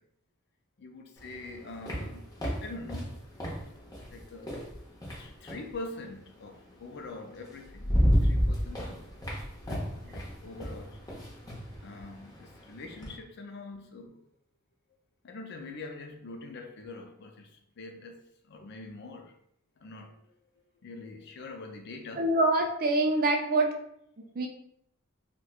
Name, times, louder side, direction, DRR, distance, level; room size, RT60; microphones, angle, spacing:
voice 1, 0.8-2.2 2.6-3.1 4.1-4.6 5.2-9.0 9.7-11.0 11.8-14.2 15.2-17.5 17.8-19.3 19.8-20.3 20.8-22.3, left 2 dB, 55° left, 4 dB, 0.5 m, -44 dB
sound 1, 1.2-5.7 7.0-7.1 7.5-13.2, equal, 20° left, 0.8 m, -31 dB
voice 2, 22.1-23.7 24.4-24.5, right 2 dB, 45° right, 3 dB, 0.5 m, -25 dB
4.3 x 2.2 x 2.4 m, 0.74 s
head